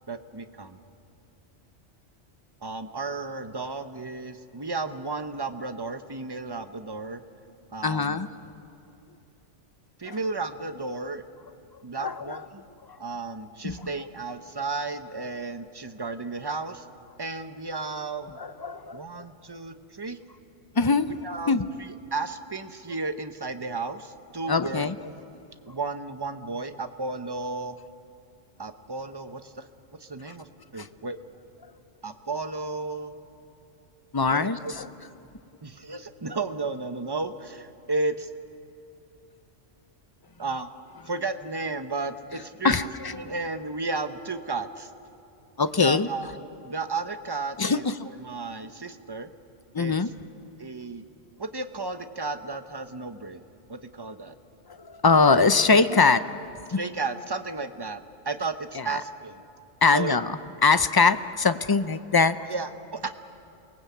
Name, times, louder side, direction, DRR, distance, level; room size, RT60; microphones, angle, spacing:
voice 1, 0.1-0.8 2.6-7.2 7.7-8.2 10.0-11.2 11.8-12.6 13.0-16.9 17.2-18.4 18.9-20.2 21.0-25.1 25.7-27.8 28.6-29.7 30.0-31.2 32.0-33.2 34.3-34.7 35.6-38.3 40.4-40.7 41.0-42.9 43.1-44.9 45.8-46.3 46.6-47.9 48.2-49.3 49.8-49.9 50.6-51.1 51.4-53.4 53.7-54.3 55.8-56.0 56.7-59.4 59.9-60.2 62.5-63.1, right 3 dB, 20° right, 9 dB, 0.9 m, -33 dB
voice 2, 7.8-8.3 10.1-10.2 12.0-12.4 13.6-13.8 18.4-19.2 20.8-21.1 21.5-21.7 24.5-24.9 34.1-34.9 42.6-43.2 45.6-46.1 47.6-47.9 49.7-50.1 54.8-56.2 56.7-56.8 58.8-59.0 59.8-62.5, left 4 dB, 30° left, 12 dB, 0.4 m, -22 dB
28.5 x 19.0 x 8.5 m, 2.7 s
omnidirectional pair, 1.2 m